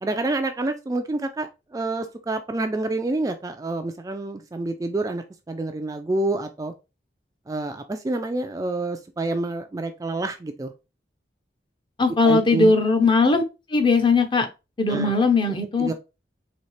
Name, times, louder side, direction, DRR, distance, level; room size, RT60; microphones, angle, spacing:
voice 1, 0.0-6.7 7.5-10.7 12.2-12.7 14.9-15.2 15.8-15.9, right 2 dB, 20° right, 6 dB, 0.3 m, -28 dB
voice 2, 12.0-13.4 13.7-14.5 14.8-15.9, left 3 dB, 25° left, 6 dB, 0.6 m, -19 dB
4.2 x 2.8 x 3.1 m, 0.27 s
head